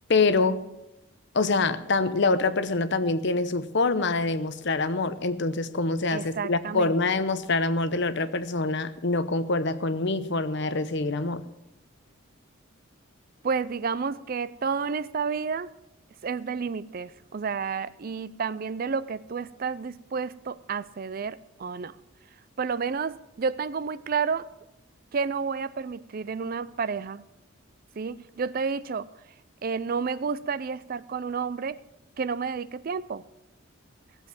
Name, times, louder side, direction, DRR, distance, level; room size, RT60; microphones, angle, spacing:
voice 1, 0.1-0.6 1.3-11.4, left 3 dB, 55° left, 12 dB, 0.8 m, -25 dB
voice 2, 6.1-6.9 13.4-15.7 16.2-22.0 22.6-24.5 25.1-27.2 28.0-29.1 29.6-31.8 32.2-33.2, right 5 dB, 45° right, 18 dB, 0.4 m, -30 dB
16.5 x 7.5 x 7.5 m, 0.93 s
head